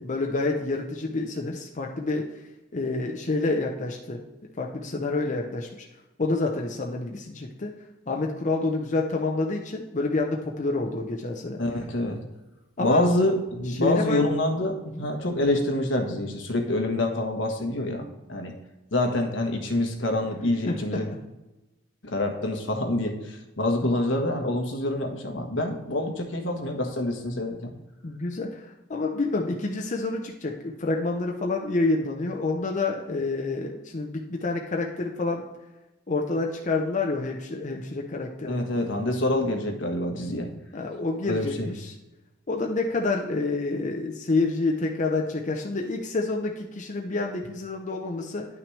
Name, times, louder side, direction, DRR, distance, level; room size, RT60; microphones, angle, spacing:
voice 1, 0.0-2.3 2.7-4.2 4.6-5.7 6.2-7.7 8.1-11.6 12.8-13.1 13.7-14.2 14.9-15.1 20.7-20.8 28.0-35.5 36.1-38.7 40.7-41.9 42.5-48.5, left 3 dB, 40° left, 1 dB, 0.7 m, -28 dB
voice 2, 11.6-12.2 12.8-18.6 18.9-21.1 22.0-27.7 38.4-40.5 41.3-41.7, left 1 dB, 75° left, 4 dB, 1.3 m, -26 dB
10.5 x 6.0 x 3.2 m, 1.1 s
head